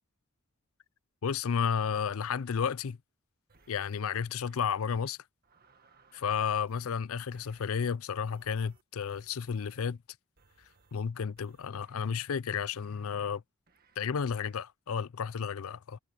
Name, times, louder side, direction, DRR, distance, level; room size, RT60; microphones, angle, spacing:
voice 1, 1.2-3.0 3.7-5.2 6.1-10.0 10.9-13.4 14.0-16.0, left 6 dB, 70° left, 0.5 m, -32 dB
sound 1, 3.5-4.0 4.5-5.1 5.4-6.4 6.7-7.0 7.3-7.7 8.2-9.9 10.4-11.0 11.4-12.3 12.7-13.4 13.7-14.0 14.3-14.6, right 4 dB, 45° right, 1.7 m, -65 dB
head